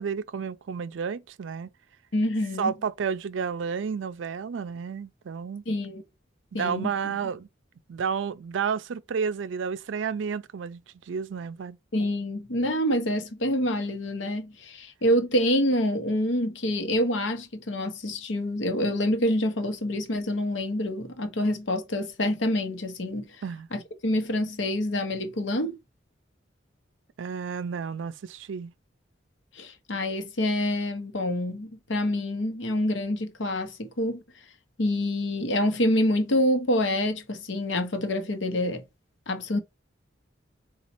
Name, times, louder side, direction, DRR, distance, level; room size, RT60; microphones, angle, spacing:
voice 1, 0.0-1.7 2.6-5.6 6.5-7.5 7.9-11.8 23.4-23.7 27.2-28.7, right 6 dB, 85° right, 0.4 m, -31 dB
voice 2, 2.1-2.7 5.7-6.0 6.5-6.9 11.9-23.2 23.7-25.8 29.6-34.2 34.8-38.8 39.3-39.6, left 1 dB, 85° left, 0.8 m, -27 dB
4.1 x 2.3 x 4.2 m
head